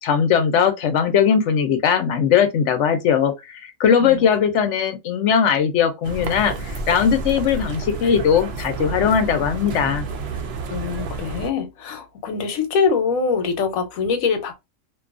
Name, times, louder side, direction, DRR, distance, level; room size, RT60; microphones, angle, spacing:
voice 1, 0.0-10.0, left 7 dB, 65° left, 0.8 m, -19 dB
sound 1, 6.0-11.5, right 3 dB, 65° right, 0.7 m, -30 dB
voice 2, 10.7-14.5, left 5 dB, 85° left, 1.1 m, -23 dB
2.6 x 2.3 x 2.4 m
omnidirectional pair, 1.4 m